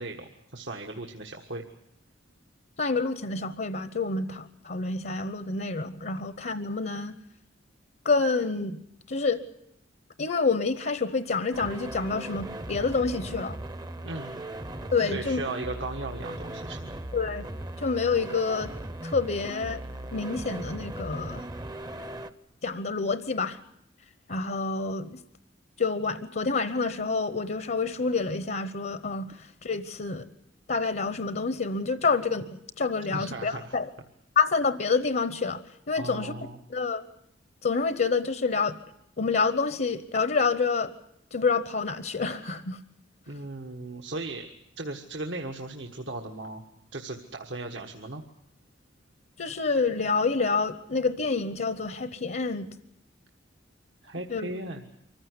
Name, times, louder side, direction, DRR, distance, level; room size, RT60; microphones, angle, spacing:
voice 1, 0.0-1.6 14.0-14.4 15.0-17.0 33.1-33.8 36.0-36.6 43.3-44.5 44.8-46.6 46.9-48.2 54.0-54.9, right 2 dB, 75° right, 2 dB, 1.6 m, -37 dB
voice 2, 2.8-7.1 8.0-8.8 9.1-9.4 10.2-13.5 14.9-15.4 17.1-17.5 17.8-18.7 19.0-19.8 20.1-21.4 22.6-23.6 24.3-25.2 25.8-30.3 30.7-33.9 34.4-35.6 35.9-36.3 36.7-37.0 37.6-38.8 39.2-40.9 41.3-42.8 49.4-52.7 54.3-54.5, left 4 dB, 55° left, 12 dB, 0.9 m, -28 dB
sound 1, 11.5-22.3, right 1 dB, 20° right, 0.8 m, -38 dB
24.5 x 15.0 x 9.6 m, 0.79 s
head